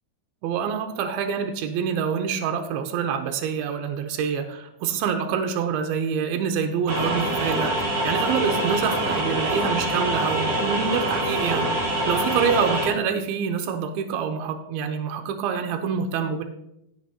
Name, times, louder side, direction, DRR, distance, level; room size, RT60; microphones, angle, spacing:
voice 1, 0.4-16.4, right 7 dB, 85° right, 5 dB, 2.7 m, -26 dB
sound 1, 6.9-12.9, right 1 dB, 40° right, 3.8 m, -25 dB
16.5 x 6.2 x 2.9 m, 0.81 s
omnidirectional pair, 4.4 m